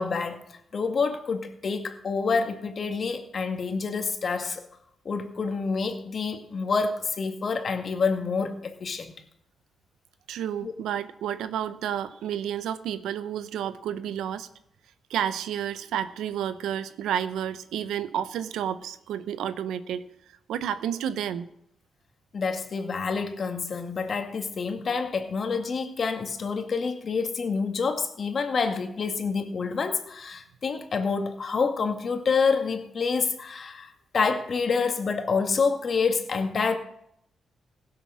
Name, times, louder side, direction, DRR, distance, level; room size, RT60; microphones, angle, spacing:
voice 1, 0.0-4.6 5.1-9.1 10.6-10.7 22.3-36.7, left 5 dB, 55° left, 2.0 m, -27 dB
voice 2, 10.3-14.5 15.1-20.1 20.5-21.5, right 9 dB, 85° right, 0.8 m, -30 dB
16.0 x 7.6 x 6.3 m
supercardioid pair, 55°, 0 cm